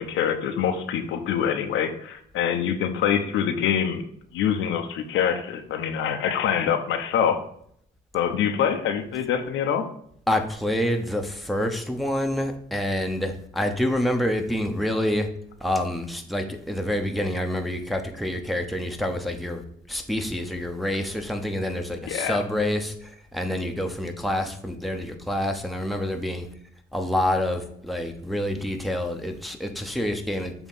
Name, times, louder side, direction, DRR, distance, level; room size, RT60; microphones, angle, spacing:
voice 1, 0.0-4.0 4.3-7.4 8.1-9.9 22.1-22.4, left 8 dB, 90° left, 6 dB, 0.8 m, -25 dB
voice 2, 10.3-15.3 15.6-19.6 19.9-26.5 26.9-30.5, left 1 dB, ahead, 3 dB, 0.9 m, -27 dB
7.1 x 3.0 x 5.4 m, 0.68 s
cardioid pair, 90°, 20 cm